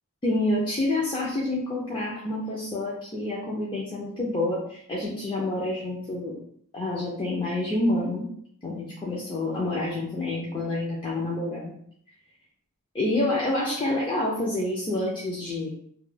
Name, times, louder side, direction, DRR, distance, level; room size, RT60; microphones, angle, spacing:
voice 1, 0.2-6.4 6.7-8.3 8.6-11.7 12.9-15.7, left 2 dB, 20° left, -5 dB, 0.4 m, -28 dB
2.2 x 2.2 x 3.1 m, 0.65 s
head